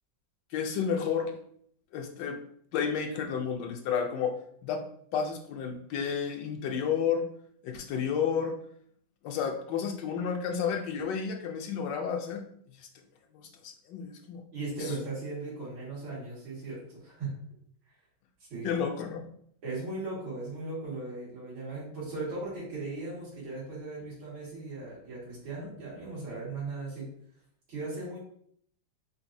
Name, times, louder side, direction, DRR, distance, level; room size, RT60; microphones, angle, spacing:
voice 1, 0.5-1.3 1.9-2.4 2.7-4.3 4.6-4.8 5.1-7.2 7.6-8.5 9.2-12.5 12.8-12.9 13.6-14.4 14.8-14.9 18.6-19.2, left 7 dB, 75° left, 4 dB, 1.1 m, -31 dB
voice 2, 14.5-17.3 18.5-18.8 19.6-27.1 27.7-28.2, right 3 dB, 85° right, -7 dB, 2.6 m, -37 dB
5.1 x 2.6 x 2.6 m, 0.64 s
omnidirectional pair, 2.1 m